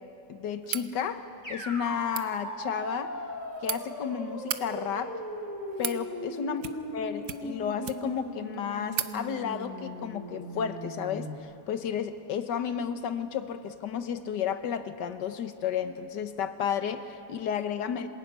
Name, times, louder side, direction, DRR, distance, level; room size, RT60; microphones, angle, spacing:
voice 1, 0.3-3.1 3.6-5.2 5.8-6.6 6.9-18.1, left 8 dB, 85° left, 10 dB, 1.7 m, -32 dB
sound 1, 0.6-0.9 2.0-2.3 3.2-3.8 4.3-4.6 5.4-6.0 6.6-7.0 7.2-8.2 8.5-8.6 8.9-9.1, right 9 dB, 65° right, 1.3 m, -35 dB
sound 2, 1.4-11.3, equal, 10° left, 2.6 m, -39 dB
27.0 x 16.0 x 9.3 m, 2.9 s
omnidirectional pair, 1.8 m